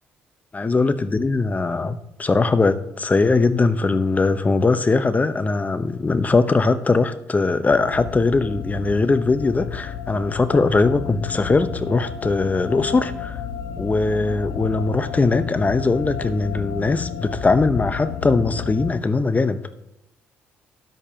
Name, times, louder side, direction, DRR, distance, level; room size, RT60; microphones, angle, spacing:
voice 1, 0.5-13.4 13.8-19.6, left 3 dB, 30° left, 1.1 m, -20 dB
sound 1, 7.7-18.9, left 8 dB, 75° left, 0.7 m, -32 dB
13.0 x 9.3 x 3.0 m
hypercardioid pair, 55°, 6 cm